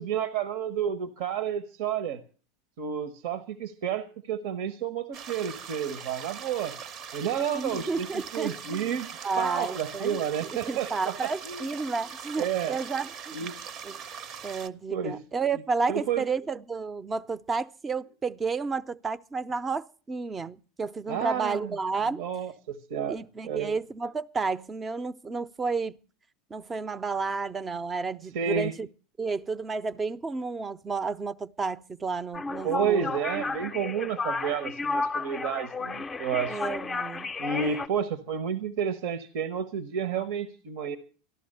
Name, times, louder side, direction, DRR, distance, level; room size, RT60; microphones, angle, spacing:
voice 1, 0.0-2.2 2.8-6.7 7.1-8.1 8.3-9.1 9.4-11.7 12.4-12.8 13.3-13.5 14.9-15.2 15.9-16.2 21.1-21.7 22.2-23.2 23.4-23.7 28.3-28.7 32.6-36.6 37.4-41.0, right 8 dB, 65° right, 1.1 m, -30 dB
sound 1, 5.1-14.7, right 7 dB, 50° right, 0.8 m, -41 dB
voice 2, 7.5-9.0 9.2-10.2 10.7-13.5 13.8-14.0 14.4-22.2 23.1-26.0 26.5-28.9 29.2-33.1 36.5-37.4, right 4 dB, 20° right, 0.6 m, -31 dB
sound 2, 32.3-37.9, left 3 dB, 20° left, 0.6 m, -32 dB
13.5 x 11.5 x 6.6 m
hypercardioid pair, 95°, 0 cm